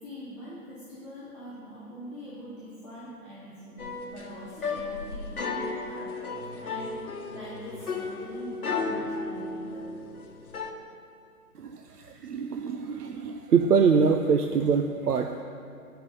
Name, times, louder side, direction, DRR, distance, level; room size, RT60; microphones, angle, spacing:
voice 1, 0.0-9.9, equal, 20° right, -12 dB, 1.3 m, -43 dB
sound 1, 3.8-10.7, left 4 dB, 65° left, 1.0 m, -34 dB
voice 2, 11.6-15.4, right 5 dB, 70° right, 5 dB, 0.6 m, -24 dB
9.7 x 5.7 x 5.5 m, 2.5 s
hypercardioid pair, 175°, 47 cm